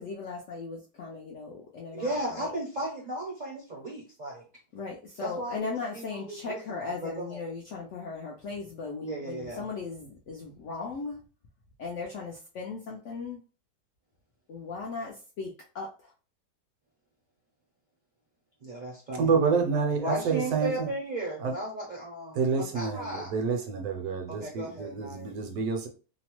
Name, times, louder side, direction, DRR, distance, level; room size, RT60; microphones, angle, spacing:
voice 1, 0.0-2.5 4.7-11.2 11.8-13.4 14.5-16.1, left 4 dB, 70° left, 0.7 m, -38 dB
voice 2, 1.9-4.4 5.2-7.4 9.0-9.6 18.6-19.3 20.0-22.5 22.7-23.3 24.4-25.3, right 1 dB, 50° right, 0.5 m, -35 dB
voice 3, 19.1-20.9 21.4-21.6 22.3-25.9, right 5 dB, 70° right, 1.0 m, -28 dB
2.8 x 2.0 x 2.9 m
omnidirectional pair, 1.7 m